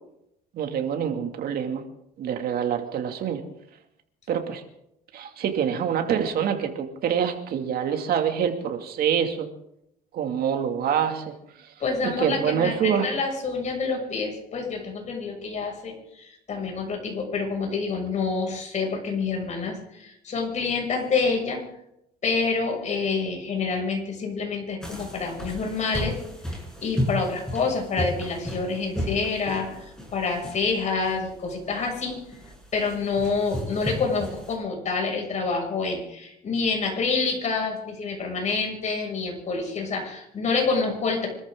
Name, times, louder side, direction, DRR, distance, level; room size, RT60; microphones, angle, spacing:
voice 1, 0.5-1.8 2.2-3.4 4.3-4.6 5.1-9.5 10.1-11.3 12.0-13.1, right 8 dB, 65° right, 5 dB, 2.6 m, -26 dB
voice 2, 11.8-21.6 22.2-26.2 26.5-32.2 32.7-41.3, left 4 dB, 45° left, 1 dB, 6.7 m, -27 dB
sound 1, 24.8-34.5, left 1 dB, 5° left, 6.6 m, -34 dB
26.0 x 13.5 x 3.9 m, 0.79 s
cardioid pair, 110°, 17 cm